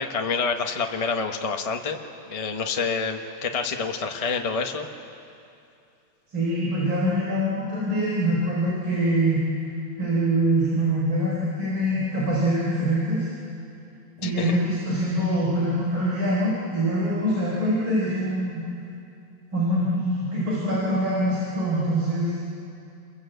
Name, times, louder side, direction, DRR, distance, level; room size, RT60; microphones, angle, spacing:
voice 1, 0.0-2.0 2.3-4.9 14.2-14.5, left 5 dB, 20° left, 3 dB, 1.0 m, -27 dB
voice 2, 6.3-9.4 10.0-13.3 14.2-18.6 19.5-22.3, right 1 dB, 90° right, -6 dB, 5.5 m, -24 dB
28.5 x 22.0 x 8.1 m, 2.6 s
omnidirectional pair, 2.2 m